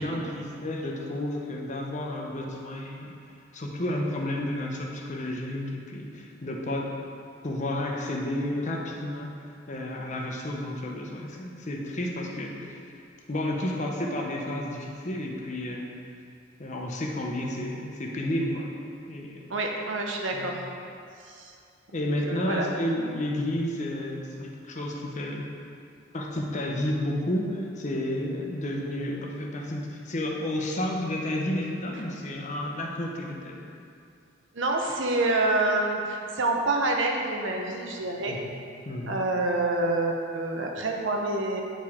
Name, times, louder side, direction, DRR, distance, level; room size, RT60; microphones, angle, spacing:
voice 1, 0.0-3.1 3.5-6.9 7.4-13.0 13.3-15.9 16.6-18.7 19.1-19.5 20.3-20.5 21.9-25.5 26.1-33.7 38.3-38.5 38.9-39.1, left 1 dB, 40° left, -1 dB, 0.8 m, -31 dB
voice 2, 19.5-20.6 21.2-21.5 21.9-22.7 34.5-38.4 39.1-41.6, right 2 dB, 75° right, 1 dB, 0.8 m, -27 dB
8.8 x 4.9 x 3.6 m, 2.5 s
head